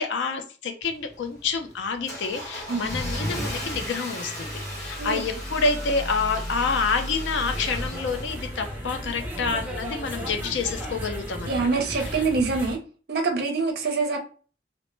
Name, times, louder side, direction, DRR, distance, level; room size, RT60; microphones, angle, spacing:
voice 1, 0.0-11.7 11.9-12.2, left 4 dB, 80° left, 5 dB, 0.5 m, -28 dB
Car / Engine starting, 0.8-9.0, equal, 20° left, 0.8 m, -34 dB
sound 1, 7.4-12.8, equal, 10° right, 0.6 m, -35 dB
voice 2, 11.5-12.8 13.1-14.2, right 4 dB, 60° right, 3 dB, 0.5 m, -25 dB
2.0 x 2.0 x 3.1 m, 0.39 s
head